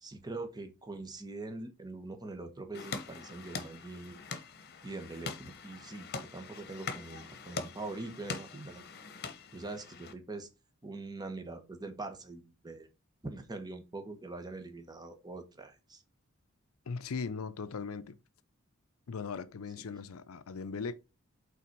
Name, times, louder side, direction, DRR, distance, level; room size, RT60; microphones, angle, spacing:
voice 1, 0.0-4.2 4.8-8.8 9.5-10.5 10.8-12.9 13.2-16.0 19.8-19.9, right 2 dB, 20° right, 1.2 m, -43 dB
sound 1, 2.7-10.1, left 4 dB, 50° left, 1.0 m, -43 dB
voice 2, 16.9-18.2 19.1-20.9, left 5 dB, 80° left, 0.5 m, -38 dB
5.8 x 4.0 x 6.0 m
head